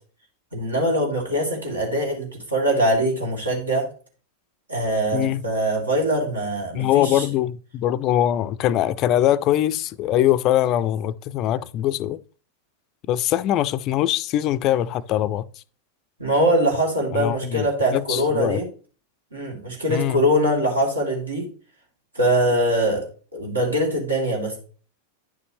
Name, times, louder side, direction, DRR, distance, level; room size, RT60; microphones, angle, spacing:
voice 1, 0.5-3.9 4.7-7.2 16.2-18.7 19.3-21.5 22.1-23.1 23.3-24.6, right 1 dB, 75° right, 2.4 m, -22 dB
voice 2, 6.7-12.2 13.1-15.4 17.1-18.6 19.9-20.2, left 12 dB, 35° left, 0.4 m, -22 dB
9.8 x 6.8 x 3.0 m
figure-of-eight pair, 90°, 0 cm